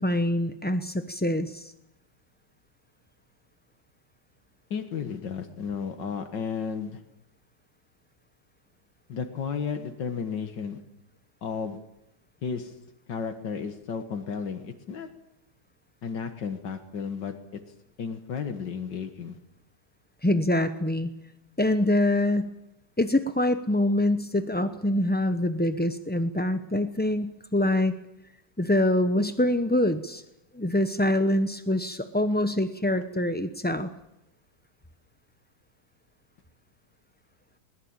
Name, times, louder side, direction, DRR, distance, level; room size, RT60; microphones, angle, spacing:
voice 1, 0.0-1.7 20.2-21.1 21.6-22.5 23.0-27.9 28.6-30.2 30.5-33.9, left 1 dB, 10° left, 9 dB, 0.5 m, -25 dB
voice 2, 4.7-7.0 9.1-10.8 11.4-11.8 12.4-12.7 13.1-15.1 16.0-17.3 18.0-19.4, left 6 dB, 80° left, 7 dB, 2.2 m, -33 dB
21.0 x 19.5 x 8.9 m, 0.88 s
omnidirectional pair, 1.9 m